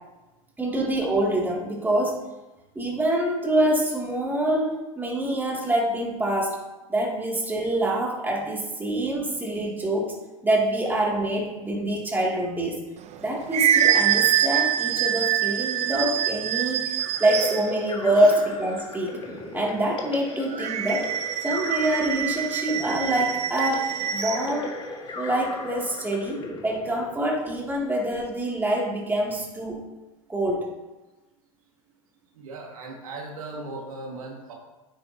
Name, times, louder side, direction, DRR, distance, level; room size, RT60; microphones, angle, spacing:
voice 1, 0.6-2.2 2.7-6.6 6.9-10.2 10.4-12.8 13.2-19.2 19.5-21.1 21.4-24.7 25.2-29.8 30.3-30.7, right 1 dB, 10° right, -3 dB, 2.8 m, -25 dB
sound 1, 13.0-17.8 20.5-24.5, right 11 dB, 40° right, 0.8 m, -25 dB
sound 2, 17.0-27.6, left 3 dB, 30° left, 1.9 m, -37 dB
voice 2, 32.3-34.5, right 2 dB, 80° right, -1 dB, 2.1 m, -38 dB
9.6 x 8.6 x 2.9 m, 1.1 s
hypercardioid pair, 90°, 18 cm